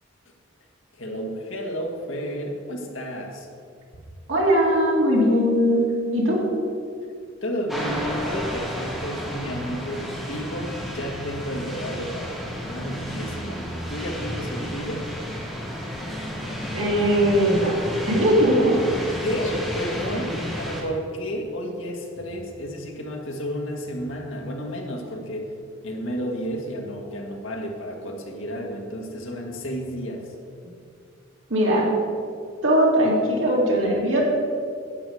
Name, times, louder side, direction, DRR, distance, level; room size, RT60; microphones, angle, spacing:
voice 1, 0.9-3.5 7.4-15.0 19.2-25.5 25.8-30.3, equal, 75° left, 1 dB, 1.7 m, -31 dB
voice 2, 4.3-6.4 16.7-17.8 18.1-18.8 31.5-31.9 32.6-34.2, equal, 75° right, -3 dB, 2.7 m, -20 dB
sound 1, 7.7-20.8, equal, ahead, 1.6 m, -32 dB
11.0 x 8.4 x 4.9 m, 2.3 s
head